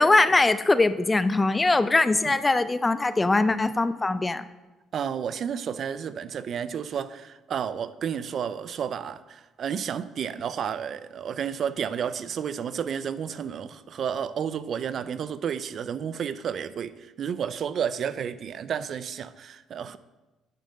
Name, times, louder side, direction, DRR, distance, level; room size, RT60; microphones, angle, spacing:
voice 1, 0.0-4.4, left 2 dB, 15° left, 13 dB, 0.4 m, -21 dB
voice 2, 4.9-20.0, right 8 dB, 50° right, 14 dB, 0.4 m, -31 dB
9.9 x 6.5 x 5.3 m, 1.1 s
cardioid pair, 115°, 0 cm